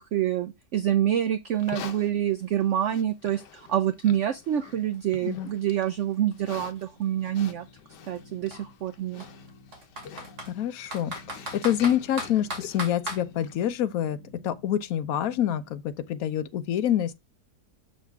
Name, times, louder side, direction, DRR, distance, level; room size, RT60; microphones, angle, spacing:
voice 1, 0.0-7.7 8.1-9.2, right 11 dB, 85° right, 0.6 m, -27 dB
Livestock farm animals working animals, 1.5-13.7, left 8 dB, 85° left, 1.4 m, -47 dB
Computer keyboard, 4.9-5.0 5.3-7.3 8.1-8.2 8.5-8.6 9.2-10.5 10.9-13.2, right 1 dB, 65° right, 2.7 m, -37 dB
sound 1, 6.9-15.7, left 2 dB, 20° right, 1.5 m, -53 dB
voice 2, 10.5-14.2 14.4-17.1, left 10 dB, 65° left, 1.0 m, -27 dB
6.5 x 6.3 x 3.5 m
omnidirectional pair, 1.8 m